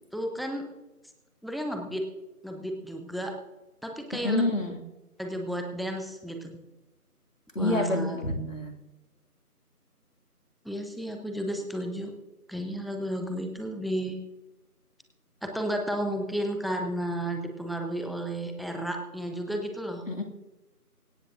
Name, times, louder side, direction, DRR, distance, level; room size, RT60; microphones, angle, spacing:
voice 1, 0.1-0.7 1.4-2.0 2.4-3.3 3.8-4.4 5.2-6.6 7.6-8.2 10.6-12.1 12.5-14.2 15.4-20.0, equal, ahead, 3 dB, 0.8 m, -32 dB
voice 2, 4.2-4.8 7.5-8.7 20.1-20.2, left 2 dB, 55° left, 2 dB, 2.2 m, -28 dB
25.0 x 9.1 x 2.6 m, 1.1 s
figure-of-eight pair, 175°, 46 cm